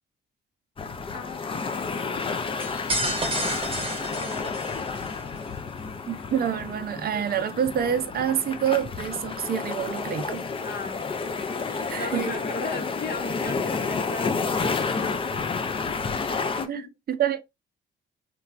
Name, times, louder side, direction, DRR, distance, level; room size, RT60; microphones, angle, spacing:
sound 1, 0.8-16.7, left 4 dB, 25° left, 0.4 m, -30 dB
voice 1, 1.1-3.6 4.0-4.9 7.1-7.2 10.6-11.3 11.6-16.2 16.6-16.9, left 3 dB, 50° left, 0.9 m, -38 dB
sound 2, 2.6-5.1, right 2 dB, 25° right, 0.9 m, -30 dB
voice 2, 6.1-10.4 11.9-12.3 16.3-16.4 16.7-16.8 17.1-17.4, right 9 dB, 50° right, 0.5 m, -27 dB
3.1 x 2.2 x 2.4 m
cardioid pair, 90°, 20 cm